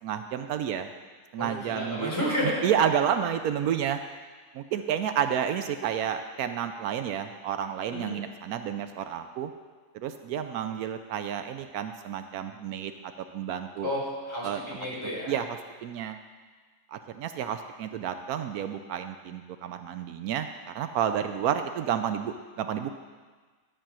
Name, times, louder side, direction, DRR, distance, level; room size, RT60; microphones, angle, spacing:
voice 1, 0.0-0.9 1.3-2.1 2.4-4.0 4.5-9.5 9.9-13.9 14.4-14.6 15.0-16.2 16.9-22.9, right 9 dB, 80° right, 8 dB, 1.1 m, -30 dB
voice 2, 1.4-2.7 7.9-8.2 13.8-15.3, left 1 dB, 10° left, -6 dB, 3.6 m, -31 dB
12.5 x 4.8 x 7.4 m, 1.4 s
omnidirectional pair, 1.5 m